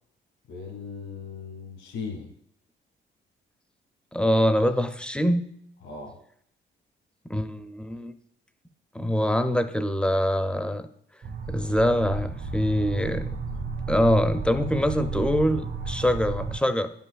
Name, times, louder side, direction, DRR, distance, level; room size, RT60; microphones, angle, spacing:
voice 1, 0.5-2.3 5.8-6.1, left 5 dB, 85° left, 0 dB, 1.7 m, -37 dB
voice 2, 4.1-5.5 7.3-8.1 8.9-10.9 11.5-13.3 13.9-16.9, equal, 5° left, 9 dB, 0.5 m, -24 dB
sound 1, 11.2-16.6, right 4 dB, 65° right, 1.7 m, -33 dB
10.5 x 5.6 x 2.3 m, 0.70 s
cardioid pair, 90°, 20 cm